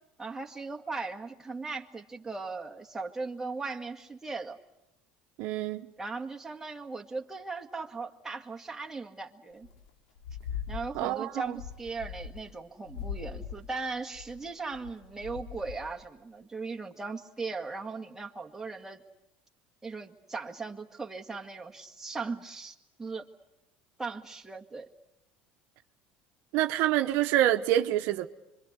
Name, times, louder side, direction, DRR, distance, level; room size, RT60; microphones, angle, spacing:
voice 1, 0.2-4.6 6.0-9.7 10.7-19.0 19.8-23.3 24.0-24.9, right 4 dB, 10° right, 2 dB, 2.0 m, -38 dB
voice 2, 5.4-5.8 10.9-11.6 26.5-28.3, right 13 dB, 70° right, 8 dB, 1.0 m, -26 dB
sound 1, 9.6-9.9 10.2-11.1 11.4-12.6 12.8-16.0, left 8 dB, 85° left, 2.9 m, -40 dB
26.0 x 24.0 x 8.2 m, 0.94 s
supercardioid pair, 105°, 4 cm